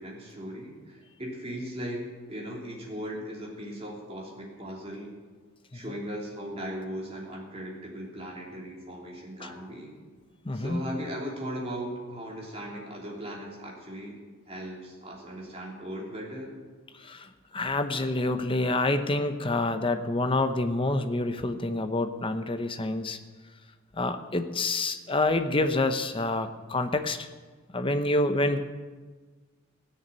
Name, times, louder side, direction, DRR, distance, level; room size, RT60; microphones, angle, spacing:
voice 1, 0.0-5.2 5.7-9.9 10.5-14.2 14.5-16.5, equal, 25° right, -2 dB, 3.2 m, -38 dB
voice 2, 10.4-10.8 17.0-17.3 17.5-23.2 23.9-27.3 27.7-28.6, left 2 dB, 25° left, 8 dB, 0.8 m, -27 dB
17.0 x 6.8 x 9.3 m, 1.4 s
head